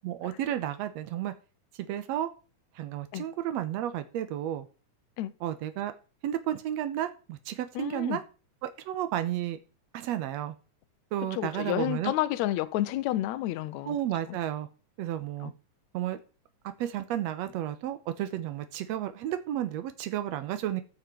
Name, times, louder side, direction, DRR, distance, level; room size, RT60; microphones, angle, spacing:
voice 1, 0.0-1.3 1.8-2.3 2.8-4.7 5.4-5.9 6.2-8.2 8.6-9.6 9.9-10.5 11.1-12.1 13.9-14.7 15.0-15.5 15.9-16.2 16.8-20.8, right 11 dB, 70° right, 2.0 m, -32 dB
voice 2, 7.8-8.2 11.3-14.0 14.3-14.4 15.4-15.5, left 14 dB, 75° left, 1.8 m, -30 dB
14.5 x 6.5 x 4.5 m
omnidirectional pair, 3.6 m